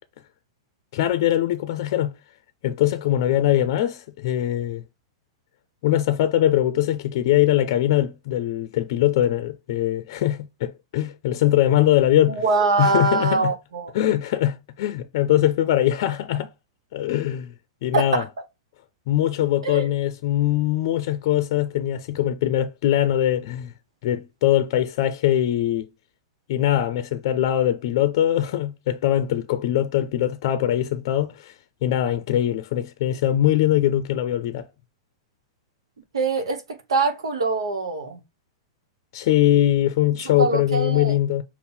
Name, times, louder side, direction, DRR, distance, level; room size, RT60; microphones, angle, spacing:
voice 1, 0.9-2.1 2.6-4.8 5.8-12.4 12.8-13.5 13.9-16.5 16.9-17.5 17.8-18.2 19.1-23.7 24.0-25.9 26.5-31.5 31.8-34.7 39.1-41.4, left 12 dB, 60° left, 0.5 m, -22 dB
voice 2, 12.3-13.9 17.9-18.2 19.6-19.9 36.1-38.2 40.2-41.1, right 3 dB, 85° right, 0.9 m, -23 dB
5.4 x 2.1 x 4.3 m
hypercardioid pair, 120°, 3 cm